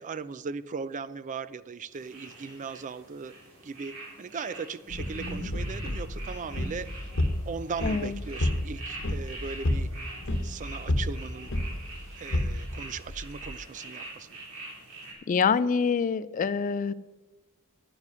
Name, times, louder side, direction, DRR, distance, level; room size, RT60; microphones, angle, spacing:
voice 1, 0.0-3.3 3.6-6.9 7.5-9.9 10.4-11.5 12.2-14.3, right 5 dB, 35° right, 15 dB, 0.4 m, -38 dB
sound 1, 1.9-15.1, right 2 dB, 65° right, 3.9 m, -45 dB
sound 2, 4.9-13.6, left 1 dB, 60° left, 1.1 m, -31 dB
voice 2, 15.3-16.9, left 5 dB, 35° left, 17 dB, 0.3 m, -25 dB
11.0 x 9.8 x 5.6 m, 1.2 s
head